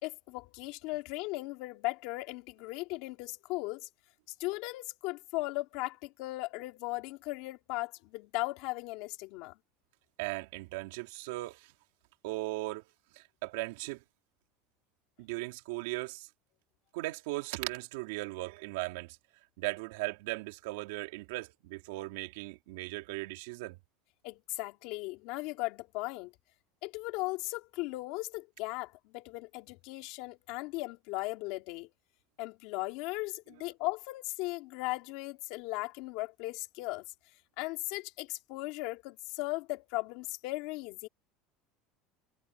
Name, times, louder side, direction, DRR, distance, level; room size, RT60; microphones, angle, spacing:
voice 1, 0.0-3.9 4.4-9.5 24.2-26.3 26.8-31.9 32.4-37.0 37.6-41.1, left 22 dB, 55° left, 2.8 m, -37 dB
voice 2, 10.2-11.6 12.2-12.8 13.4-14.0 15.2-16.3 16.9-19.2 19.6-23.8, right 21 dB, 75° right, 3.1 m, -37 dB
cardioid pair, 165°, 0 cm